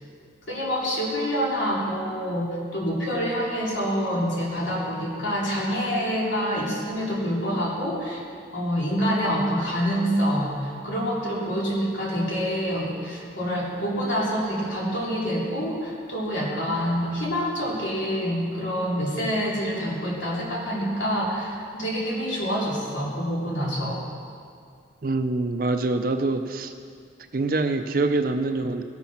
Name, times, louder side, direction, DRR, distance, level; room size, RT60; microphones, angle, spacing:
voice 1, 0.5-8.2 8.5-24.0, equal, 85° left, -5 dB, 2.8 m, -26 dB
voice 2, 25.0-26.7 27.3-28.8, right 3 dB, 50° right, 7 dB, 0.5 m, -25 dB
17.0 x 7.2 x 5.8 m, 2.2 s
head